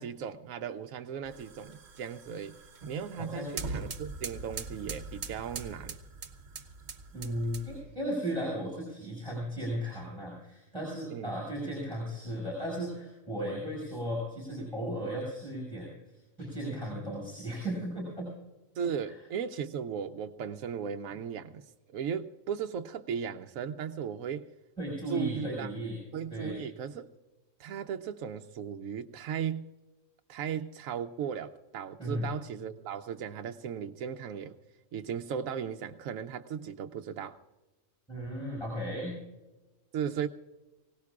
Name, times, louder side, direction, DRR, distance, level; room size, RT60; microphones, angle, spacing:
voice 1, 0.0-2.6 2.9-6.0 11.1-11.3 18.7-21.6 21.9-24.5 25.1-25.7 26.1-27.1 27.6-29.7 30.3-34.5 34.9-37.4 39.9-40.3, right 7 dB, 80° right, 5 dB, 1.0 m, -36 dB
sound 1, 1.2-7.9, right 4 dB, 55° right, 1.2 m, -42 dB
voice 2, 3.2-3.6 7.1-18.3 19.1-19.2 24.8-26.0 26.3-26.6 32.0-32.3 38.1-39.2, equal, 5° left, -4 dB, 5.6 m, -36 dB
Guitar, 16.4-17.5, left 3 dB, 35° left, 4.4 m, -51 dB
24.5 x 17.5 x 2.4 m, 1.1 s
omnidirectional pair, 1.4 m